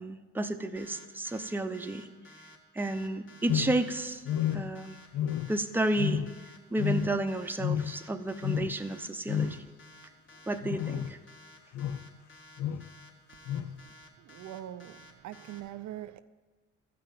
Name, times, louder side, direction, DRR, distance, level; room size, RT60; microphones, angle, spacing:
voice 1, 0.0-2.1 2.7-4.2 4.5-5.0 5.5-6.2 6.7-9.6 10.5-11.2, right 2 dB, 5° right, 0.7 m, -31 dB
sound 1, 0.8-15.6, left 1 dB, 40° left, 1.7 m, -54 dB
sound 2, 3.5-3.9 4.2-4.8 5.1-5.7 6.0-6.5 6.8-7.2 7.6-8.0 8.4-8.7 9.3-9.7 10.6-11.2 11.7-12.1 12.6-12.9 13.5-13.7, left 9 dB, 70° left, 0.6 m, -31 dB
voice 2, 14.2-16.2, right 12 dB, 70° right, 0.5 m, -42 dB
12.5 x 5.8 x 8.4 m
cardioid pair, 90°, 30 cm